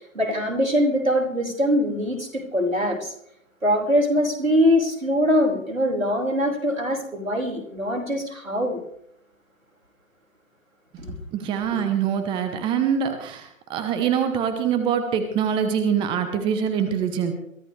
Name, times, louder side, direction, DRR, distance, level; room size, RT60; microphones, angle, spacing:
voice 1, 0.1-3.1 3.6-8.8 11.0-11.1, equal, 85° right, 0 dB, 5.1 m, -22 dB
voice 2, 11.3-17.3, right 8 dB, 10° right, 8 dB, 1.0 m, -24 dB
22.5 x 14.0 x 3.3 m, 0.73 s
figure-of-eight pair, 130°, 40 cm